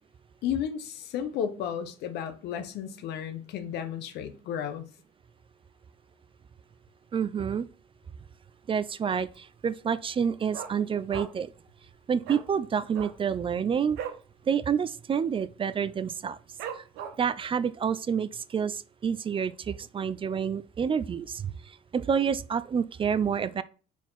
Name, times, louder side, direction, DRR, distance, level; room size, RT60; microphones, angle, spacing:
voice 1, 0.4-4.8, left 9 dB, 80° left, 1.0 m, -33 dB
voice 2, 7.1-7.7 8.7-11.5 12.1-14.0 14.5-16.4 16.8-16.9 17.2-23.6, right 7 dB, 30° right, 0.5 m, -28 dB
Dog, 9.0-9.5 9.8-9.9 10.1-11.6 11.8-12.0 12.2-12.5 12.9-14.3 14.6-14.8 15.1-15.5 15.9-16.0 16.6-17.4 17.9-18.0, right 8 dB, 90° right, 1.0 m, -39 dB
4.5 x 4.4 x 5.7 m
cardioid pair, 110°, 17 cm